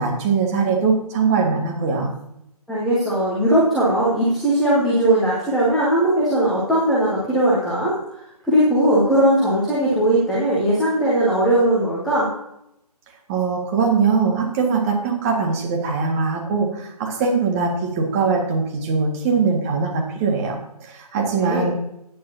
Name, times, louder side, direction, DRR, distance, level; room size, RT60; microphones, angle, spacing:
voice 1, 0.0-2.1 13.3-21.7, right 5 dB, 20° right, 0 dB, 1.8 m, -21 dB
voice 2, 2.7-7.9 8.4-12.3 21.4-21.7, right 1 dB, ahead, -9 dB, 0.4 m, -19 dB
15.0 x 8.8 x 2.8 m, 0.79 s
figure-of-eight pair, 150°, 20 cm